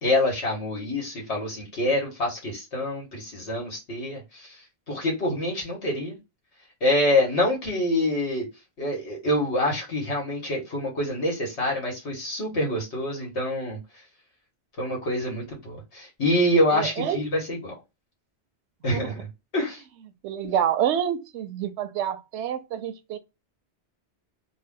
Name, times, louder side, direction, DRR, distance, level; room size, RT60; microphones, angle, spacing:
voice 1, 0.0-6.2 6.8-8.5 8.8-13.8 14.8-17.7 18.8-19.8, left 1 dB, 85° left, 1.9 m, -26 dB
voice 2, 16.7-17.2 18.9-19.2 20.2-23.2, right 9 dB, 90° right, 0.9 m, -27 dB
3.5 x 2.3 x 3.6 m
omnidirectional pair, 1.1 m